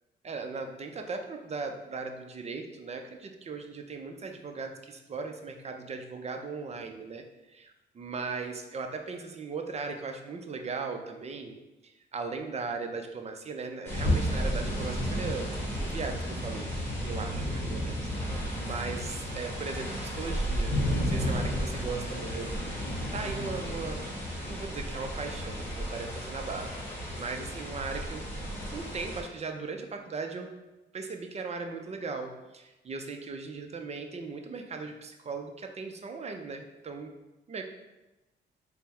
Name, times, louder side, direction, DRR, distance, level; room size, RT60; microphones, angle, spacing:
voice 1, 0.2-7.2 7.5-11.6 12.1-15.5 15.8-18.0 18.3-20.7 21.0-22.8 23.1-24.0 24.5-28.2 28.7-30.5 30.9-37.1 37.5-37.6, right 4 dB, 35° right, 4 dB, 0.5 m, -38 dB
sound 1, 13.9-29.2, equal, 10° left, 1.1 m, -32 dB
3.4 x 2.0 x 4.3 m, 1.0 s
cardioid pair, 90°, 20 cm